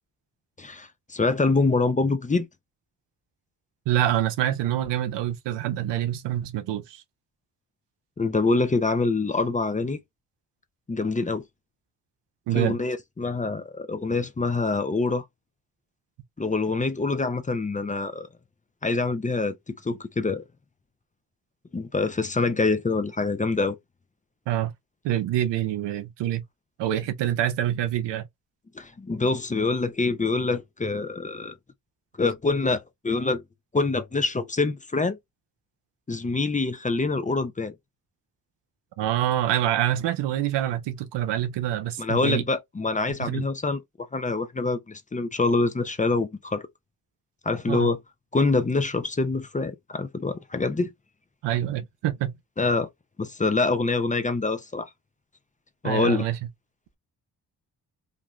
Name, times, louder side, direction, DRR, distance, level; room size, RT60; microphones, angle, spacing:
voice 1, 0.6-2.5 8.2-10.0 10.9-11.4 12.5-15.2 16.4-18.3 18.8-20.4 21.7-23.8 28.7-31.6 32.2-33.4 33.7-35.2 36.1-37.7 42.0-46.6 47.4-48.0 48.3-50.9 52.6-52.9 53.2-54.9 55.8-56.3, left 3 dB, 20° left, 0.5 m, -25 dB
voice 2, 3.9-7.0 12.5-12.8 24.5-24.7 25.0-26.4 26.8-28.3 39.0-42.4 43.2-43.4 47.7-47.9 51.4-52.3 55.8-56.4, right 12 dB, 90° right, 0.6 m, -26 dB
2.5 x 2.3 x 3.0 m
supercardioid pair, 50°, 41 cm